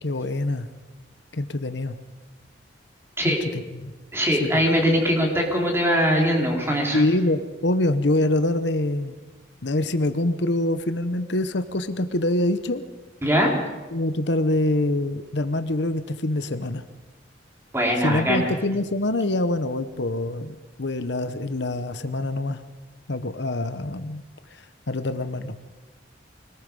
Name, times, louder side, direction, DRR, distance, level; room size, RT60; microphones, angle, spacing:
voice 1, 0.0-0.7 1.3-1.9 3.2-3.9 4.4-4.5 6.9-9.2 9.6-12.8 13.9-16.8 18.0-22.6 23.1-24.2 24.5-25.5, left 1 dB, 65° left, 11 dB, 1.0 m, -25 dB
voice 2, 4.1-7.0 13.2-13.5 17.7-18.5, equal, 15° right, 0 dB, 3.9 m, -21 dB
25.0 x 19.5 x 5.4 m, 1.2 s
head